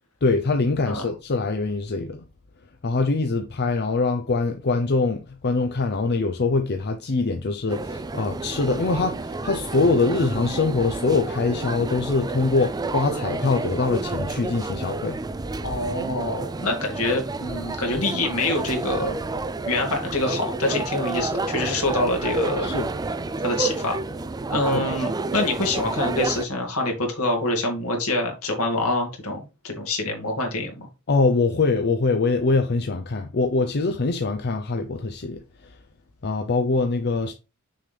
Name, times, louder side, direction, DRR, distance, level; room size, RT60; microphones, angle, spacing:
voice 1, 0.2-2.2 2.8-15.2 22.6-22.9 24.5-24.8 31.1-35.8 36.2-37.3, left 3 dB, 50° left, 0.6 m, -23 dB
sound 1, 7.7-26.5, right 3 dB, 15° right, 0.4 m, -30 dB
voice 2, 15.6-19.2 19.7-22.7 23.4-24.0 24.5-30.9, left 2 dB, 70° left, 2.2 m, -25 dB
6.4 x 5.8 x 3.4 m
head